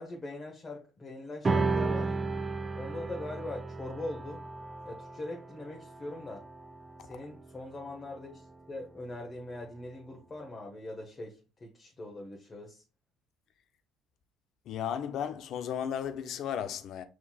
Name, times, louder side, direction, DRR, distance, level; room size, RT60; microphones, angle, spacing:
voice 1, 0.0-2.1 2.7-4.4 4.8-6.4 7.0-12.8, left 2 dB, 30° left, 1.0 m, -42 dB
sound 1, 1.4-8.2, right 3 dB, 30° right, 0.5 m, -34 dB
voice 2, 14.7-17.0, left 9 dB, 65° left, 0.5 m, -34 dB
5.5 x 3.1 x 2.3 m
supercardioid pair, 75°, 0 cm